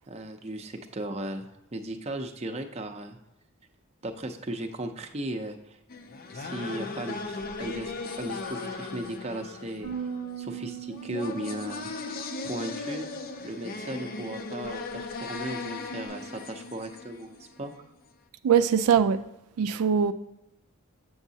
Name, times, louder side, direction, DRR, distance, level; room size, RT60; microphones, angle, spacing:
voice 1, 0.1-3.2 4.0-5.8 6.3-7.9 8.2-9.9 10.4-12.2 12.4-13.1 13.4-17.7, right 1 dB, 30° right, 0.5 m, -36 dB
sound 1, 5.9-17.8, left 3 dB, 40° left, 0.5 m, -38 dB
Bass guitar, 9.8-16.1, right 8 dB, 90° left, 2.6 m, -42 dB
voice 2, 18.4-19.2 19.6-20.1, right 7 dB, 85° right, 0.3 m, -22 dB
7.1 x 7.1 x 2.7 m
head